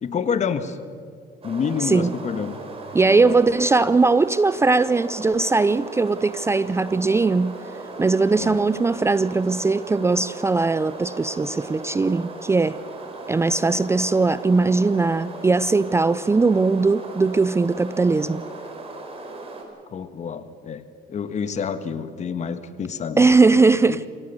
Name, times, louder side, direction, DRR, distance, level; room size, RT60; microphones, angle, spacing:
voice 1, 0.0-0.8 1.4-2.6 3.0-3.4 8.3-8.6 19.9-20.8 21.1-23.3 23.8-24.0, left 6 dB, 45° left, 11 dB, 1.5 m, -28 dB
sound 1, 1.4-19.6, right 3 dB, 35° right, 4.5 m, -37 dB
voice 2, 1.8-2.1 2.9-7.5 8.0-12.8 13.3-18.4 23.2-24.1, right 3 dB, 15° right, 16 dB, 0.4 m, -19 dB
26.5 x 17.0 x 6.8 m, 2.2 s
cardioid pair, 110°, 17 cm